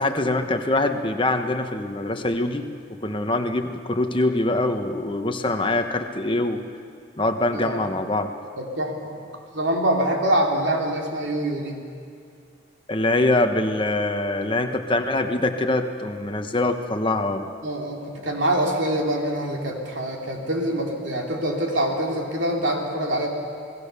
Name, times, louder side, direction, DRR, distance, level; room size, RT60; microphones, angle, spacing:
voice 1, 0.0-2.7 3.0-6.6 7.2-8.3 12.9-17.4, left 2 dB, 25° left, 6 dB, 1.2 m, -24 dB
voice 2, 7.5-7.8 8.6-9.2 9.5-11.8 17.6-23.3, right 1 dB, 65° right, 1 dB, 3.2 m, -25 dB
28.0 x 19.0 x 6.9 m, 2.3 s
head